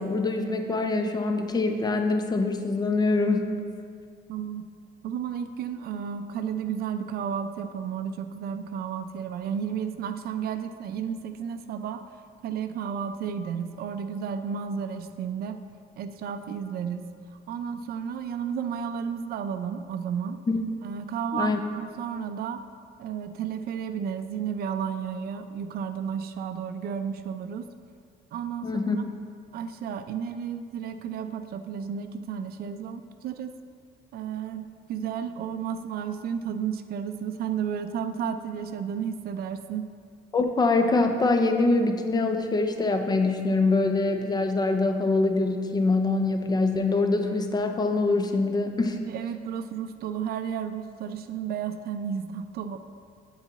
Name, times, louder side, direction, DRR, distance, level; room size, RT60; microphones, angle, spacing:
voice 1, 0.0-3.5 20.5-20.6 21.3-21.6 28.6-29.0 40.3-49.0, left 3 dB, 25° left, 6 dB, 0.4 m, -24 dB
voice 2, 4.3-4.7 5.0-12.0 12.4-15.6 16.0-17.0 17.5-20.4 20.8-22.6 23.0-27.6 28.3-28.7 29.0-29.1 29.5-33.5 34.1-39.9 49.1-52.8, right 7 dB, 60° right, 9 dB, 0.4 m, -32 dB
9.3 x 4.0 x 4.0 m, 2.1 s
cardioid pair, 145°, 18 cm